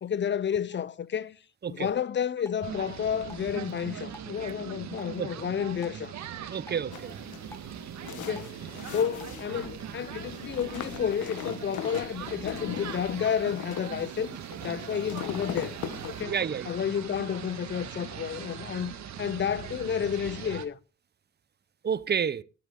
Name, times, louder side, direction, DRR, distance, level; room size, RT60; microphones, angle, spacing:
voice 1, 0.0-1.4 1.7-6.1 8.2-15.8 16.0-16.4 16.6-20.8, left 8 dB, 40° left, 0.6 m, -31 dB
Drip, 2.4-9.4, left 1 dB, 10° left, 1.3 m, -55 dB
sound 1, 2.6-20.7, right 9 dB, 65° right, 1.6 m, -40 dB
voice 2, 6.5-7.1 16.2-16.7 21.8-22.4, right 7 dB, 35° right, 0.7 m, -29 dB
walk on bed, 6.9-16.2, left 10 dB, 75° left, 1.3 m, -40 dB
12.5 x 12.5 x 3.8 m
cardioid pair, 90°, 30 cm